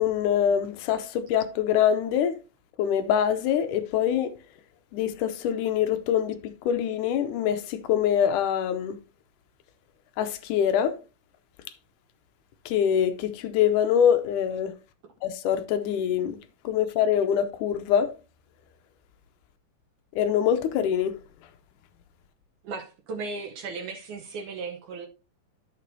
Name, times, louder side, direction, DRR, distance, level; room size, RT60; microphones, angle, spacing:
voice 1, 0.0-2.4 2.8-4.3 4.9-9.0 10.2-11.0 12.7-14.7 15.2-16.4 16.6-18.1 20.1-21.2, left 9 dB, 75° left, 2.1 m, -24 dB
voice 2, 22.6-25.1, right 4 dB, 70° right, 2.2 m, -36 dB
11.5 x 6.8 x 2.7 m
omnidirectional pair, 3.8 m